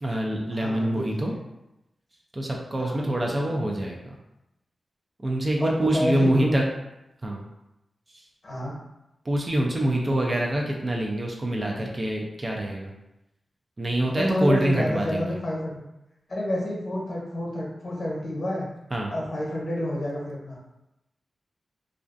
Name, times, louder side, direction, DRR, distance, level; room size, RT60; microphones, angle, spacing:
voice 1, 0.0-1.3 2.3-4.2 5.2-6.6 7.2-7.4 9.2-12.9 13.8-15.4 18.9-19.1, right 1 dB, 40° right, -1 dB, 0.5 m, -25 dB
voice 2, 0.5-1.4 2.8-3.3 5.6-6.6 8.4-8.7 14.1-15.8 16.3-18.7 19.1-20.6, left 1 dB, 55° left, -3 dB, 0.9 m, -29 dB
2.5 x 2.2 x 2.5 m, 0.90 s
cardioid pair, 45°, 0 cm